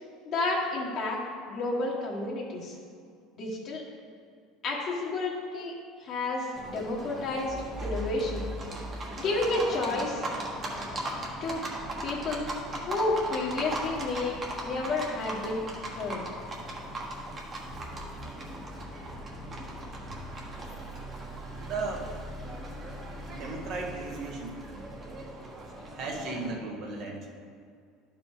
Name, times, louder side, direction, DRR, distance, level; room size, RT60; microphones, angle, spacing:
voice 1, 0.2-1.2 1.5-2.7 3.4-3.8 4.6-5.7 6.0-7.5 7.8-8.4 9.2-10.3 11.4-11.6 12.0-12.5 12.9-15.6 16.0-16.3, left 2 dB, 50° left, -4 dB, 1.3 m, -30 dB
Livestock farm animals working animals, 6.5-26.5, right 1 dB, 30° right, 1.4 m, -38 dB
sound 1, 7.5-10.1, equal, 5° left, 0.4 m, -39 dB
voice 2, 21.6-22.1 23.3-24.6 25.9-27.3, right 3 dB, 55° right, 0 dB, 1.4 m, -35 dB
11.0 x 4.9 x 3.6 m, 2.3 s
supercardioid pair, 120°, 0 cm